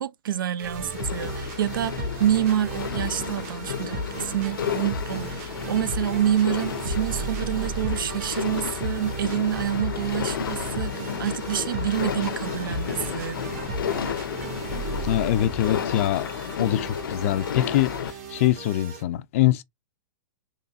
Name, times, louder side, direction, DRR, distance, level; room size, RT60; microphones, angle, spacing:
voice 1, 0.0-13.4, right 11 dB, 85° right, 0.5 m, -27 dB
sound 1, 0.6-19.0, right 2 dB, 45° right, 1.4 m, -34 dB
sound 2, 0.9-18.1, left 8 dB, 85° left, 0.6 m, -32 dB
voice 2, 15.0-16.3 16.6-19.6, left 13 dB, 40° left, 0.4 m, -24 dB
4.0 x 3.1 x 2.3 m
hypercardioid pair, 160°, 11 cm